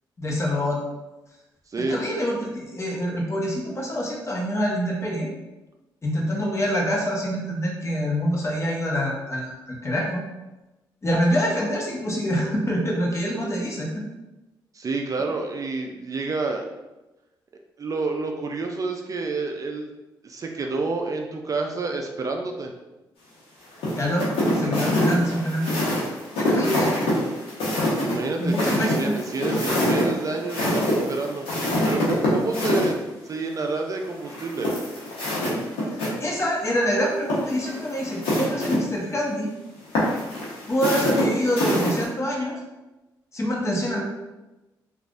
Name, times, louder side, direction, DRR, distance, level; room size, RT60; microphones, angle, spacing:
voice 1, 0.2-0.8 1.8-5.3 6.0-10.2 11.0-14.0 23.9-24.3 24.5-25.8 26.4-27.0 28.4-29.1 35.9-39.5 40.7-42.5 43.3-44.0, equal, 35° left, -2 dB, 0.9 m, -25 dB
voice 2, 1.7-2.1 14.7-16.6 17.8-19.9 20.2-22.7 28.0-31.5 31.9-33.0 33.2-34.7, right 3 dB, 40° right, 2 dB, 0.4 m, -29 dB
sound 1, 23.8-32.9 34.3-36.1 36.4-36.5 37.2-38.8 39.9-42.0, left 1 dB, 85° left, 0.9 m, -25 dB
3.3 x 2.4 x 2.4 m, 1.0 s
supercardioid pair, 65°, 9 cm